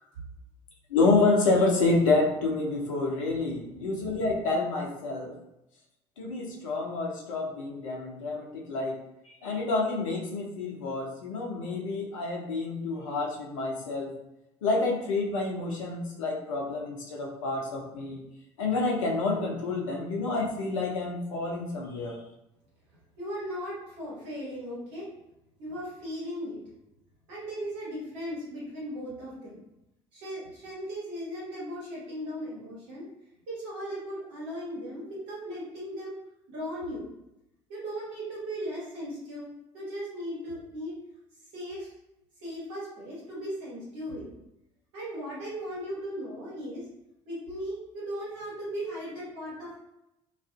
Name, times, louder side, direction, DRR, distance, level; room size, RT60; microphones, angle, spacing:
voice 1, 0.9-5.3 6.2-14.1 14.6-18.2 18.6-22.2, left 3 dB, 75° left, -1 dB, 0.4 m, -28 dB
voice 2, 23.2-25.1 25.6-26.6 27.3-29.6 30.1-33.0 33.5-36.2 36.5-37.1 37.7-39.5 39.7-40.9 41.5-41.9 42.4-44.3 44.9-46.8 47.2-49.8, equal, 65° right, -7 dB, 1.2 m, -37 dB
2.4 x 2.3 x 2.2 m, 0.87 s
figure-of-eight pair, 55°, 17 cm